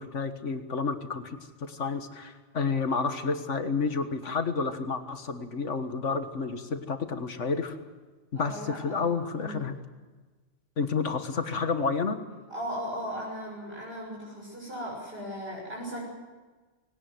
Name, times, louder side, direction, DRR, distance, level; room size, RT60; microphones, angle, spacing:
voice 1, 0.0-7.8 8.3-9.8 10.8-12.2, left 5 dB, 75° left, 8 dB, 1.9 m, -30 dB
voice 2, 8.3-9.6 12.5-16.0, equal, 50° right, -4 dB, 6.6 m, -37 dB
21.0 x 18.0 x 7.8 m, 1.3 s
omnidirectional pair, 1.2 m